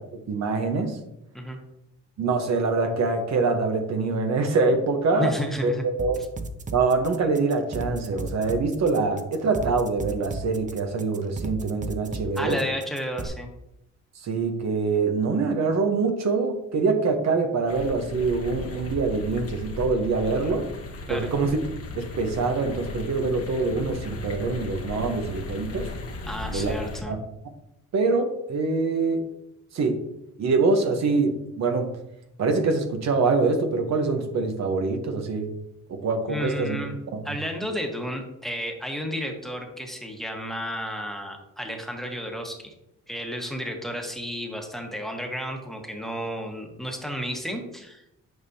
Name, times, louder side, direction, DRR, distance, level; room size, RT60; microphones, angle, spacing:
voice 1, 0.3-1.0 2.2-5.3 5.6-6.2 6.7-12.6 14.2-20.7 21.1-21.6 21.9-25.9 26.5-26.7 27.1-27.2 27.9-29.2 29.7-30.0 30.4-31.9 32.4-35.5 35.9-36.8 37.1-37.2, right 4 dB, 60° right, 5 dB, 1.1 m, -24 dB
voice 2, 5.2-5.8 6.2-6.3 12.3-13.5 21.1-21.3 26.3-27.1 36.3-36.9 37.2-42.7 43.1-48.2, equal, ahead, 2 dB, 1.3 m, -32 dB
sound 1, 6.0-13.3, right 2 dB, 25° right, 0.7 m, -34 dB
sound 2, 17.7-27.0, left 4 dB, 50° left, 1.3 m, -36 dB
9.4 x 5.3 x 2.8 m, 0.84 s
cardioid pair, 90°, 30 cm